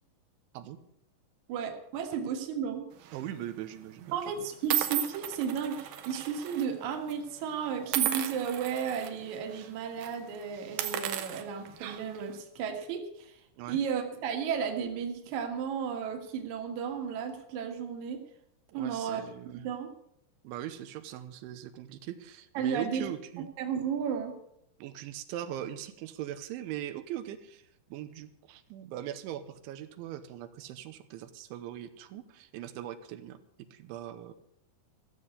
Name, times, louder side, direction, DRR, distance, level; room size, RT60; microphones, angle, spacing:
voice 1, 1.5-2.9 4.1-13.3 13.7-18.2 18.7-19.2 19.6-19.9 22.5-23.1 23.6-24.3, right 7 dB, 55° right, 4 dB, 2.5 m, -33 dB
sound 1, 3.0-3.3 4.1-4.2 4.7-6.7 6.9-7.1 7.9-9.1 9.5-9.7 10.0-10.1 10.6-12.2, right 12 dB, 70° right, 3.0 m, -34 dB
voice 2, 3.1-4.5 13.6-13.8 18.7-19.7 20.4-23.5 24.8-33.4 33.7-34.3, right 12 dB, 85° right, 10 dB, 3.3 m, -40 dB
14.5 x 7.6 x 8.2 m, 0.74 s
omnidirectional pair, 5.3 m